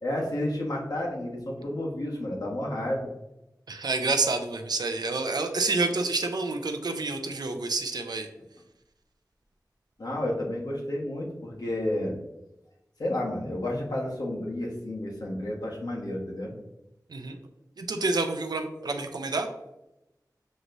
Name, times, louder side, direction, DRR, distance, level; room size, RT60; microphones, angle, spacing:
voice 1, 0.0-3.1 10.0-12.1 13.0-16.5, left 1 dB, 70° left, -3 dB, 1.3 m, -31 dB
voice 2, 3.7-8.3 17.1-17.4 17.8-19.5, right 3 dB, 80° right, 5 dB, 0.5 m, -28 dB
6.5 x 3.1 x 2.6 m, 0.92 s
wide cardioid pair, 65°, 7 cm